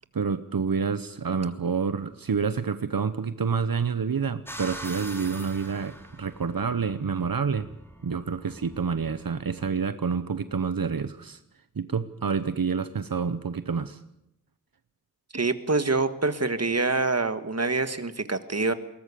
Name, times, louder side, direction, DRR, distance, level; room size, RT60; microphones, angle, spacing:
voice 1, 0.1-7.7 8.0-11.4 11.8-14.0, right 5 dB, 80° right, 11 dB, 0.9 m, -28 dB
sound 1, 4.5-9.7, right 1 dB, 5° left, 3.7 m, -44 dB
voice 2, 15.3-18.7, right 3 dB, 45° right, 10 dB, 1.7 m, -26 dB
21.0 x 19.0 x 8.4 m, 0.82 s
wide cardioid pair, 60°, 34 cm